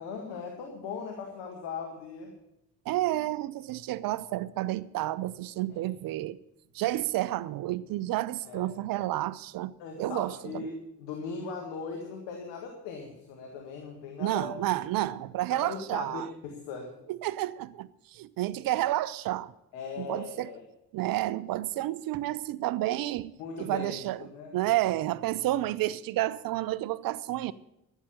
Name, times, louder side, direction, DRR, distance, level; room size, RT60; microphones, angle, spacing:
voice 1, 0.0-2.3 5.7-5.8 8.4-8.7 9.8-14.5 15.5-16.9 19.7-20.6 23.4-24.0 24.3-24.7, left 5 dB, 65° left, 1.9 m, -39 dB
voice 2, 2.9-6.4 6.7-9.7 10.0-10.7 14.2-16.3 17.1-19.5 20.0-20.5 20.9-23.3 23.6-24.2 24.5-27.5, right 15 dB, 45° right, 0.5 m, -30 dB
13.0 x 8.0 x 8.8 m
figure-of-eight pair, 45°, 48 cm